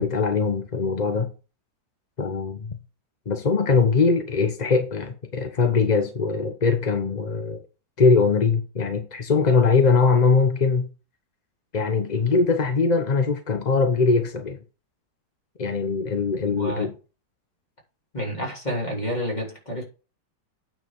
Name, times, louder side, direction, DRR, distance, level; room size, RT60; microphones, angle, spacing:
voice 1, 0.0-1.3 2.2-2.8 3.3-7.6 8.0-10.9 11.7-14.6 15.6-16.9, left 4 dB, 40° left, 0.6 m, -21 dB
voice 2, 16.4-16.9 18.1-19.8, equal, 20° left, 3.3 m, -29 dB
9.1 x 4.9 x 5.4 m
omnidirectional pair, 2.0 m